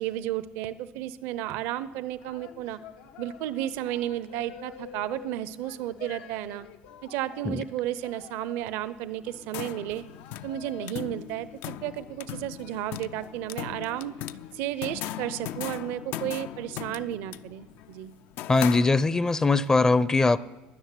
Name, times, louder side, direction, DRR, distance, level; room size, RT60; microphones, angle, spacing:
voice 1, 0.0-2.8 3.2-6.7 7.0-10.0 10.4-14.2 14.5-18.1, right 13 dB, 75° right, 15 dB, 0.8 m, -33 dB
sound 1, 2.2-18.1, left 10 dB, 90° left, 1.2 m, -50 dB
sound 2, 9.3-19.4, left 12 dB, 70° left, 0.5 m, -39 dB
voice 2, 18.5-20.4, left 3 dB, 15° left, 17 dB, 0.5 m, -21 dB
13.5 x 9.9 x 9.7 m, 1.1 s
supercardioid pair, 110°, 4 cm